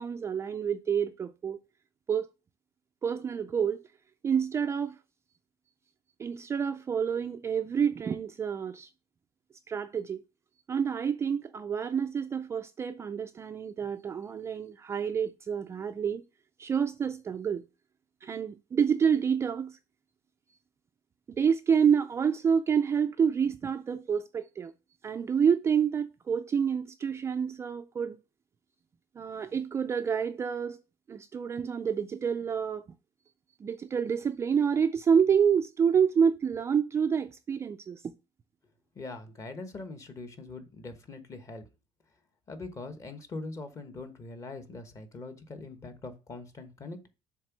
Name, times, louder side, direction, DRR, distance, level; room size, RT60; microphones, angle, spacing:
voice 1, 0.0-1.6 2.1-2.3 3.0-3.8 4.2-5.0 6.2-8.9 9.7-10.2 10.7-16.2 16.6-17.7 18.2-19.8 21.3-24.7 25.0-28.2 29.2-30.8 31.1-32.8 33.6-38.1, right 7 dB, 25° right, 0.3 m, -28 dB
voice 2, 38.9-41.6 42.5-47.1, left 3 dB, 25° left, 1.1 m, -42 dB
7.4 x 3.5 x 6.0 m
cardioid pair, 155°, 11 cm